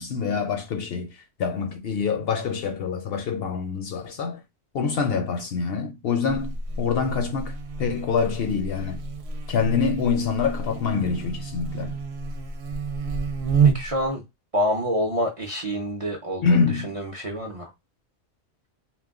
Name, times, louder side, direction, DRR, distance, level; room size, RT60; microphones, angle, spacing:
voice 1, 0.0-4.4 4.7-9.0 9.5-12.0 16.4-16.9, left 5 dB, 65° left, 0.7 m, -25 dB
Buzz, 6.3-14.1, right 5 dB, 65° right, 0.8 m, -28 dB
voice 2, 13.6-14.2 14.5-17.7, equal, 40° right, 0.5 m, -27 dB
2.2 x 2.1 x 3.5 m
omnidirectional pair, 1.2 m